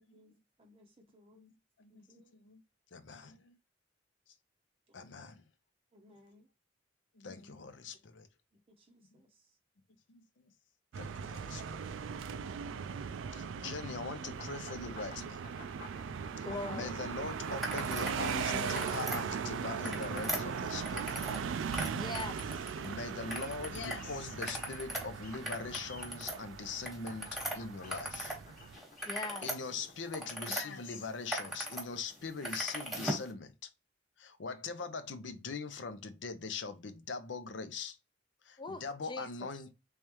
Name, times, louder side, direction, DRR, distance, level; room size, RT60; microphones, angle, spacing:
voice 1, 0.1-1.4 1.9-2.3 3.1-3.2 4.9-5.0 5.9-6.5 7.9-8.0 8.7-9.5, left 1 dB, 30° right, 0.6 m, -64 dB
voice 2, 2.9-3.5 4.9-5.4 7.2-8.3 10.1-10.2 11.0-11.8 13.3-15.4 16.4-21.2 22.8-28.4 29.4-33.7 34.2-38.0 38.4-39.7, left 4 dB, 70° left, 0.6 m, -42 dB
sound 1, 10.9-28.8, right 6 dB, 85° right, 0.4 m, -39 dB
sound 2, 14.3-32.8, left 3 dB, 45° left, 1.0 m, -57 dB
voice 3, 16.4-17.0 21.9-22.7 29.1-29.5 38.6-39.5, left 2 dB, 25° left, 0.5 m, -41 dB
sound 3, 17.6-18.2 18.5-19.2 19.7-21.4 21.7-22.9 23.3-24.0 24.3-28.4 28.7-30.6 31.1-31.8 32.1-33.3, right 1 dB, ahead, 1.2 m, -39 dB
3.5 x 3.3 x 2.9 m
head